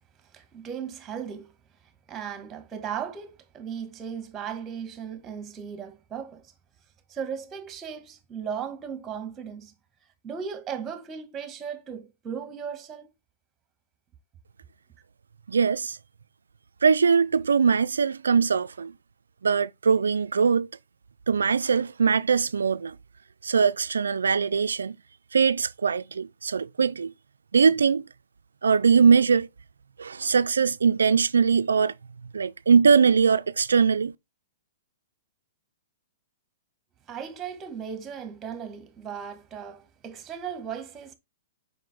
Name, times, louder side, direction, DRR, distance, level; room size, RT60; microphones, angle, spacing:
voice 1, 0.3-1.5 2.1-6.5 7.1-9.7 10.2-13.1 37.1-41.1, right 7 dB, 20° right, 1.7 m, -36 dB
voice 2, 15.5-16.0 16.8-18.9 19.4-20.7 21.3-23.0 23.4-25.0 25.3-27.1 27.5-28.0 28.6-29.5 30.0-31.9 32.3-34.1, right 6 dB, 85° right, 0.3 m, -21 dB
7.5 x 5.3 x 3.5 m
hypercardioid pair, 120°, 0 cm